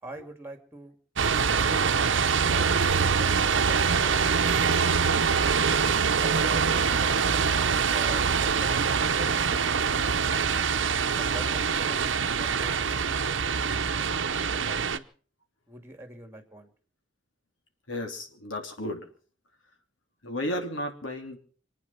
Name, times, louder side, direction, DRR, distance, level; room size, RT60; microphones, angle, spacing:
voice 1, 0.0-1.0 2.5-4.7 6.2-7.2 7.9-9.6 11.2-12.1 12.4-12.9 13.5-14.2 14.6-15.1 15.7-16.7, right 2 dB, 10° right, 7 dB, 2.5 m, -44 dB
sound 1, 1.2-15.0, right 6 dB, 70° right, 0.8 m, -24 dB
voice 2, 17.9-19.1 20.2-21.4, left 1 dB, 80° left, 4 dB, 3.2 m, -34 dB
26.5 x 9.3 x 5.8 m, 0.43 s
head